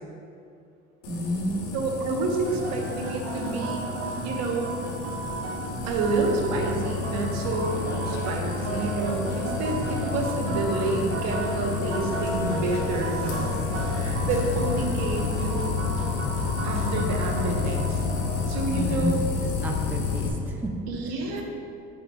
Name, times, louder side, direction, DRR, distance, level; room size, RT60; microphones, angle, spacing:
sound 1, 1.0-20.3, left 5 dB, 65° left, 1.1 m, -30 dB
voice 1, 1.1-1.6 18.7-19.1 19.4-20.8, equal, 5° right, 1 dB, 0.5 m, -30 dB
voice 2, 1.7-3.9 4.2-4.7 5.8-13.5 13.9-15.8 16.6-18.0 18.5-19.2 20.9-21.4, right 3 dB, 60° right, 1 dB, 1.1 m, -29 dB
sound 2, 2.4-18.8, right 2 dB, 45° right, 1.3 m, -34 dB
sound 3, 7.4-15.5, left 2 dB, 35° left, 1.2 m, -41 dB
8.4 x 5.4 x 2.3 m, 2.4 s
hypercardioid pair, 80°, 30 cm